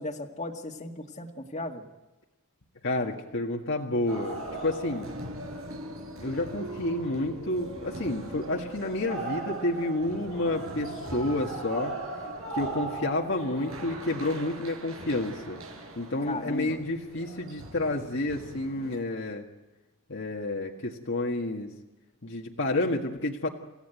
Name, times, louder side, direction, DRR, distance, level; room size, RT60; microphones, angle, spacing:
voice 1, 0.0-1.8 16.2-16.8, left 2 dB, 30° left, 1 dB, 2.0 m, -36 dB
voice 2, 2.8-5.1 6.2-11.9 12.5-15.6 16.0-19.4 20.1-21.7 22.2-23.5, left 2 dB, 60° left, 0 dB, 1.8 m, -30 dB
sound 1, 4.1-19.0, right 2 dB, 75° right, 5.5 m, -39 dB
29.5 x 16.0 x 9.1 m, 1.1 s
head